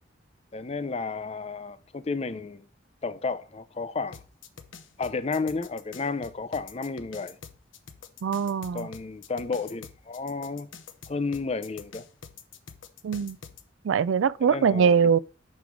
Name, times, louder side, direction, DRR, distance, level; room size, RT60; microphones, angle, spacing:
voice 1, 0.5-2.7 3.0-4.2 5.0-7.4 8.7-10.7 11.1-12.1 14.4-15.2, left 4 dB, 30° left, 0.5 m, -32 dB
sound 1, 4.1-13.6, left 6 dB, 80° left, 0.9 m, -46 dB
voice 2, 8.2-8.9 13.0-13.4 13.8-15.2, right 6 dB, 80° right, 0.4 m, -22 dB
6.3 x 5.4 x 4.6 m
head